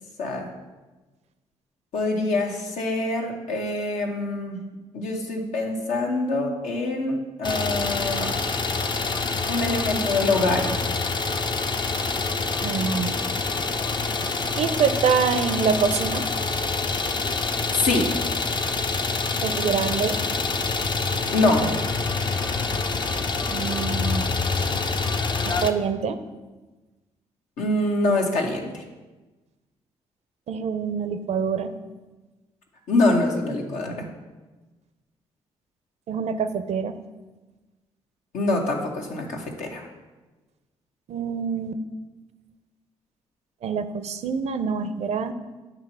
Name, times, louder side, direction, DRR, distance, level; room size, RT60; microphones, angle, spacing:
voice 1, 0.2-0.5 1.9-4.6 4.9-8.4 9.5-10.8 17.7-18.2 21.3-21.8 27.6-28.8 32.9-34.1 38.3-39.9, left 2 dB, 75° left, 1 dB, 1.1 m, -25 dB
Idling, 7.4-25.7, left 4 dB, 35° left, 0.6 m, -26 dB
voice 2, 12.6-13.2 14.6-16.3 19.4-20.2 23.5-24.3 25.4-26.2 30.5-31.7 36.1-36.9 41.1-41.8 43.6-45.3, right 6 dB, 60° right, 10 dB, 0.5 m, -25 dB
8.5 x 3.0 x 5.5 m, 1.2 s
hypercardioid pair, 45°, 13 cm